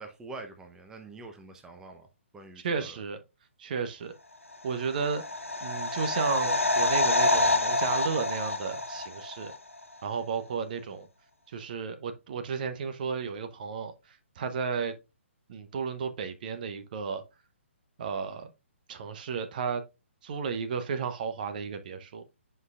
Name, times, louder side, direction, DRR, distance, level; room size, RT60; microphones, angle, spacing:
voice 1, 0.0-2.1 2.3-3.0, right 3 dB, 10° right, 0.7 m, -45 dB
voice 2, 2.6-3.2 3.6-4.2 4.6-5.2 5.6-9.5 10.0-11.1 11.5-15.0 15.5-17.2 18.0-18.5 18.9-19.8 20.2-22.2, right 5 dB, 40° right, 0.8 m, -33 dB
sound 1, 4.7-9.6 9.8-9.9, left 2 dB, 85° left, 1.2 m, -27 dB
9.4 x 5.4 x 2.4 m
figure-of-eight pair, 135°, 7 cm